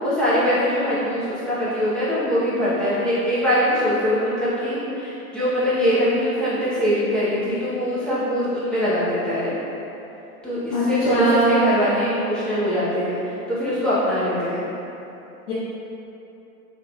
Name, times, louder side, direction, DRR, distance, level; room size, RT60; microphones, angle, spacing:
voice 1, 0.0-9.5 10.4-13.2 13.6-14.6, equal, ahead, -11 dB, 0.7 m, -22 dB
voice 2, 10.7-11.7 15.5-15.6, right 1 dB, 75° left, -12 dB, 1.1 m, -20 dB
3.6 x 3.5 x 2.2 m, 2.9 s
hypercardioid pair, 125°, 45 cm